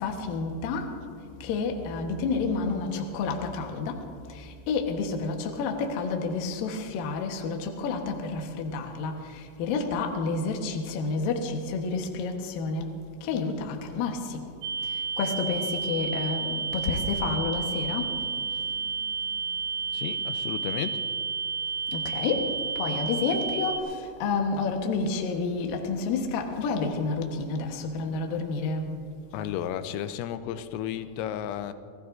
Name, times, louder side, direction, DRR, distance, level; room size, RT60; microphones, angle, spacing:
voice 1, 0.0-0.9 1.4-3.9 4.7-9.1 9.6-12.9 13.3-14.2 15.2-18.1 21.9-22.4 22.8-23.8 24.2-28.9, left 4 dB, 70° left, 3 dB, 2.2 m, -29 dB
sound 1, 14.6-23.8, right 5 dB, 80° right, 2.7 m, -31 dB
voice 2, 19.9-21.0 29.3-31.7, left 10 dB, 90° left, 11 dB, 3.3 m, -33 dB
28.0 x 16.5 x 2.6 m, 2.2 s
omnidirectional pair, 5.8 m